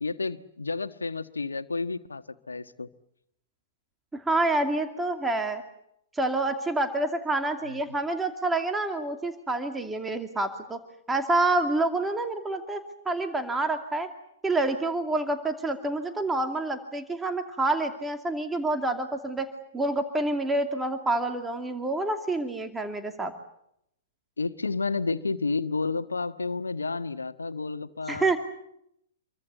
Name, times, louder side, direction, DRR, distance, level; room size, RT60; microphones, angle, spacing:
voice 1, 0.0-2.9 7.6-7.8 24.4-28.4, left 4 dB, 80° left, 1.4 m, -31 dB
voice 2, 4.1-5.6 6.2-10.8 11.1-12.8 13.1-14.1 14.4-19.5 19.7-23.3 28.1-28.4, right 2 dB, 10° right, 2.5 m, -27 dB
27.5 x 23.5 x 8.3 m
figure-of-eight pair, 110°, 0 cm